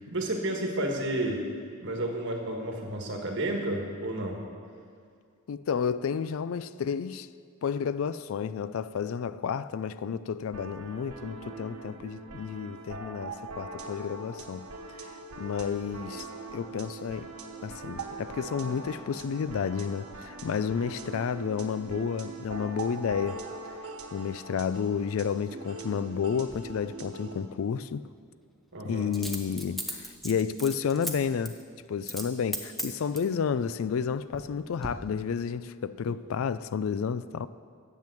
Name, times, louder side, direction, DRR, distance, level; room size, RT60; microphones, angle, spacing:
voice 1, 0.0-1.4 1.8-4.4 28.7-29.1 36.1-36.2, right 1 dB, 55° right, 1.6 m, -31 dB
voice 2, 5.5-7.3 7.6-14.7 15.4-16.3 16.5-17.3 17.6-23.4 24.1-28.1 28.8-31.6 31.9-37.5, left 6 dB, 65° left, 0.3 m, -31 dB
sound 1, 10.5-27.5, right 3 dB, 80° right, 1.2 m, -42 dB
Coin (dropping), 26.5-26.6 29.1-31.1 31.4-31.6 32.0-32.3 32.5-33.3 34.0-34.5 34.8-34.9, equal, ahead, 0.8 m, -36 dB
10.5 x 7.5 x 7.7 m
head